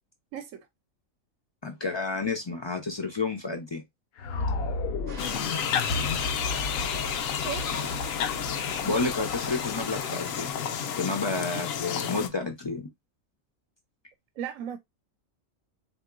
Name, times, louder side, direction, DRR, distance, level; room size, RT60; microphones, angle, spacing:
voice 1, 0.3-0.7 7.4-7.7 14.4-14.8, right 9 dB, 80° right, 1.0 m, -35 dB
voice 2, 1.6-3.8 8.8-10.5 11.0-12.9, left 3 dB, 45° left, 0.3 m, -30 dB
sound 1, 4.2-10.3, left 2 dB, 60° left, 0.7 m, -34 dB
sound 2, 5.1-10.5, right 4 dB, 35° right, 0.7 m, -46 dB
sound 3, 5.2-12.3, left 8 dB, 80° left, 1.0 m, -31 dB
3.7 x 2.7 x 2.3 m
omnidirectional pair, 1.4 m